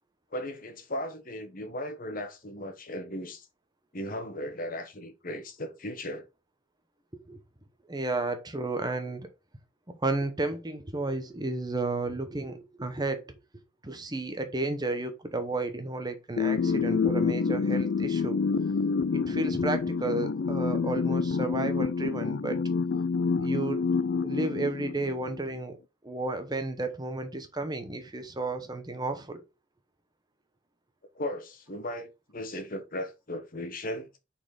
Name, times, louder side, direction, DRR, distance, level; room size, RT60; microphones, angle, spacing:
voice 1, 0.3-3.5 3.9-6.3 31.1-34.1, left 1 dB, 45° left, 1.2 m, -36 dB
voice 2, 7.9-9.3 9.9-13.3 13.8-18.4 19.1-22.6 23.4-23.8 24.2-25.8 26.0-29.4, right 2 dB, 20° right, 0.9 m, -32 dB
sound 1, 16.4-25.4, left 5 dB, 65° left, 0.4 m, -28 dB
5.7 x 4.4 x 4.8 m
head